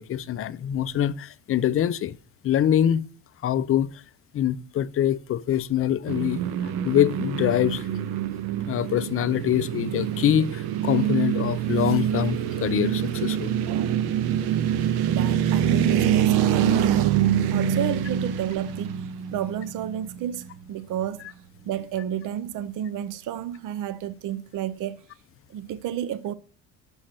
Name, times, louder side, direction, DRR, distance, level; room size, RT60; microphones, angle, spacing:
voice 1, 0.0-2.1 2.4-3.1 3.4-3.9 4.3-7.9 8.7-13.6, left 10 dB, 40° left, 0.4 m, -24 dB
sound 1, 6.1-20.2, right 9 dB, 90° right, 0.8 m, -25 dB
voice 2, 13.7-14.4 15.1-19.0 19.3-21.2 21.7-25.0 25.5-26.3, right 10 dB, 55° right, 0.6 m, -31 dB
6.3 x 5.8 x 6.4 m
cardioid pair, 125°, 37 cm